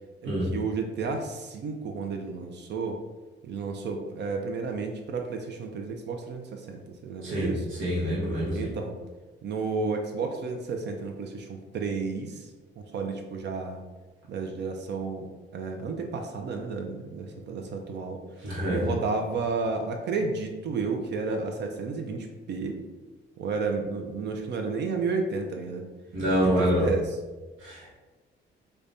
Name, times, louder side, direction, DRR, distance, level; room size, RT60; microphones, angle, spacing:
voice 1, 0.2-3.0 3.4-7.7 8.5-9.0 9.4-13.8 14.3-18.2 18.6-22.8 23.4-25.9 26.3-27.2, right 4 dB, 60° right, 4 dB, 0.4 m, -32 dB
voice 2, 7.8-8.6 18.4-18.8 26.1-26.9 27.6-27.9, equal, 80° right, -6 dB, 1.0 m, -26 dB
5.0 x 2.2 x 2.6 m, 1.2 s
cardioid pair, 90°, 20 cm